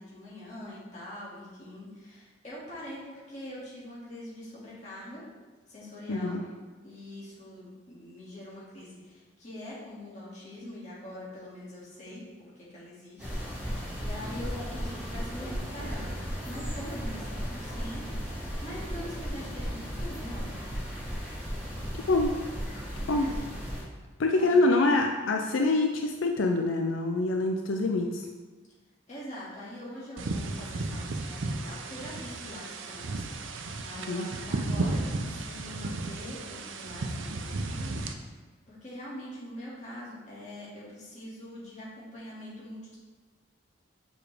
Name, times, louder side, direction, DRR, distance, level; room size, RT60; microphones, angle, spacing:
voice 1, 0.0-5.2 5.7-6.4 6.8-18.2 18.6-20.5 23.1-23.3 24.4-24.6 29.1-33.5 33.7-37.9 38.7-43.0, left 1 dB, 35° left, -7 dB, 2.1 m, -43 dB
voice 2, 6.1-6.4 22.1-22.3 23.1-23.3 24.2-28.3 34.1-34.3, left 2 dB, 85° left, 3 dB, 0.5 m, -25 dB
sound 1, 13.2-23.8, equal, 5° right, 2.1 m, -35 dB
sound 2, 30.2-38.1, right 2 dB, 85° right, 0.6 m, -34 dB
6.8 x 5.1 x 3.5 m, 1.3 s
head